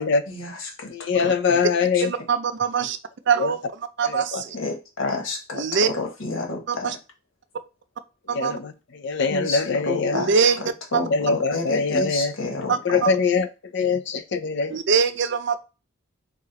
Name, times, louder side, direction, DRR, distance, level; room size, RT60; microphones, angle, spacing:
voice 1, 0.3-1.6 4.5-6.9 9.3-10.4 10.9-13.1, left 3 dB, 80° left, 1.4 m, -30 dB
voice 2, 0.9-2.1 3.4-3.5 4.0-4.4 8.3-8.7 9.0-10.2 11.1-12.3 12.8-13.5 13.7-14.8, left 5 dB, 60° left, 0.6 m, -23 dB
voice 3, 2.0-3.0 3.3-3.6 4.0-4.6 5.5-5.9 6.7-7.0 8.3-8.6 10.1-10.6 10.9-11.1 12.7-13.1 14.7-15.6, right 6 dB, 65° right, 0.5 m, -23 dB
4.8 x 2.4 x 4.0 m
head